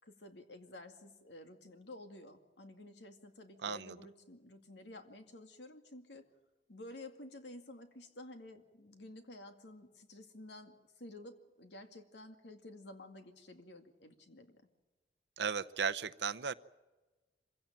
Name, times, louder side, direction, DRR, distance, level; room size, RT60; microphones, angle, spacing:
voice 1, 0.0-6.3 6.7-14.6, left 1 dB, 80° left, 6 dB, 2.3 m, -52 dB
voice 2, 3.6-4.0 15.4-16.5, right 6 dB, 75° right, 11 dB, 0.8 m, -36 dB
25.0 x 16.5 x 8.9 m, 1.2 s
head